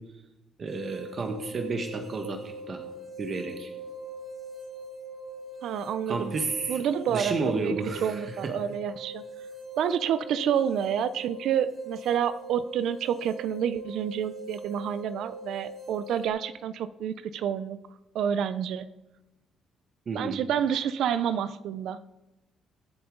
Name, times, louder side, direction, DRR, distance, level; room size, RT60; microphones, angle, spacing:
voice 1, 0.6-2.4 2.7-2.8 3.2-3.7 6.1-6.8 7.1-8.5 20.1-20.4, right 3 dB, 45° right, 4 dB, 1.5 m, -31 dB
sound 1, 0.7-16.3, right 1 dB, 25° right, 3.2 m, -42 dB
voice 2, 5.6-6.3 6.7-7.7 8.0-9.2 9.8-17.8 18.1-18.9 20.1-22.0, right 8 dB, 75° right, 14 dB, 0.5 m, -29 dB
23.0 x 8.0 x 3.9 m, 1.0 s
cardioid pair, 110°, 0 cm